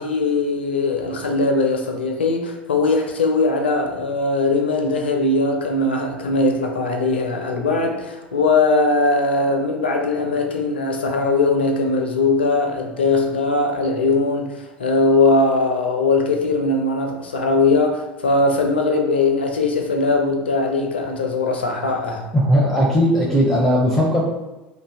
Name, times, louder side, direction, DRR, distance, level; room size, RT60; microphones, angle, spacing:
voice 1, 0.0-22.3, left 3 dB, 80° left, 3 dB, 0.4 m, -20 dB
voice 2, 22.3-24.2, equal, 5° left, -4 dB, 0.6 m, -17 dB
2.5 x 2.1 x 3.3 m, 1.1 s
figure-of-eight pair, 75°, 6 cm